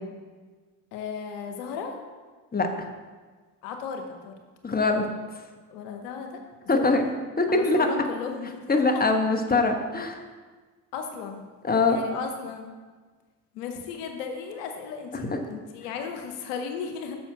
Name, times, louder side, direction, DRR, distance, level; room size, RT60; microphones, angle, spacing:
voice 1, 0.9-2.0 3.6-4.4 5.7-7.0 7.5-9.0 10.9-11.4 11.9-12.7 13.5-17.2, left 6 dB, 80° left, 5 dB, 1.0 m, -35 dB
voice 2, 4.6-5.1 6.7-7.1 7.4-7.9 8.7-10.2 11.6-12.0 15.1-15.2, left 3 dB, 20° left, 5 dB, 1.2 m, -22 dB
6.9 x 6.0 x 5.9 m, 1.4 s
hypercardioid pair, 55°, 48 cm